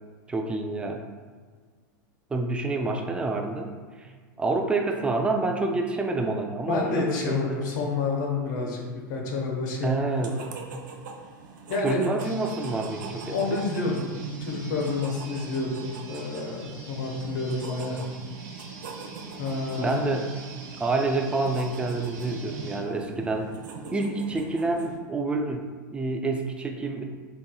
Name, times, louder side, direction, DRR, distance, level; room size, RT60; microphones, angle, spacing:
voice 1, 0.3-1.0 2.3-3.7 4.0-4.1 4.4-7.7 9.8-10.4 11.8-13.6 19.8-20.3 20.8-23.5 23.9-27.0, right 3 dB, 10° right, 3 dB, 0.4 m, -28 dB
voice 2, 6.7-8.8 9.1-10.4 11.7-12.1 13.3-14.1 14.4-15.8 16.1-18.0 19.4-20.1, left 3 dB, 65° left, 0 dB, 0.9 m, -29 dB
sound 1, 10.1-25.0, right 4 dB, 70° right, 0.5 m, -41 dB
sound 2, 12.2-22.9, right 3 dB, 45° right, 0.9 m, -46 dB
4.3 x 3.5 x 2.2 m, 1.5 s
hypercardioid pair, 105°, 11 cm